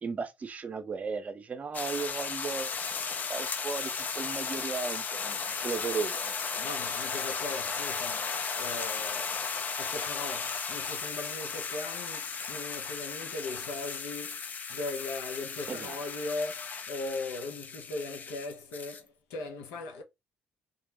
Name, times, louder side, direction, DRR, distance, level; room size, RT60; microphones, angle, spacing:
voice 1, 0.0-2.7 3.3-6.6 15.7-16.0, right 5 dB, 40° right, 0.6 m, -36 dB
sound 1, 1.7-19.0, left 5 dB, 45° left, 0.4 m, -35 dB
voice 2, 6.6-9.4 9.8-14.4 14.7-20.0, left 3 dB, 85° left, 0.6 m, -39 dB
2.4 x 2.0 x 3.1 m
supercardioid pair, 70°, 4 cm